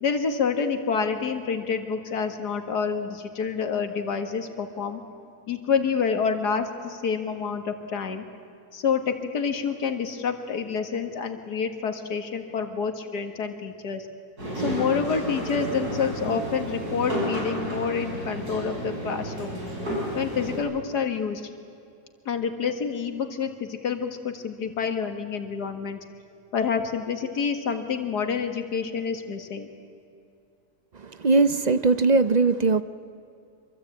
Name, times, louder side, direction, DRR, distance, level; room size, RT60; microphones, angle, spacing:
voice 1, 0.0-5.0 5.5-8.2 8.7-14.1 14.6-19.6 20.1-21.5 22.3-26.0 26.5-29.7, left 6 dB, 90° left, 6 dB, 2.3 m, -28 dB
sound 1, 14.4-20.6, equal, 70° right, 6.3 m, -31 dB
voice 2, 31.0-32.8, right 3 dB, 50° right, 13 dB, 0.5 m, -20 dB
26.0 x 24.0 x 8.6 m, 2.5 s
omnidirectional pair, 1.7 m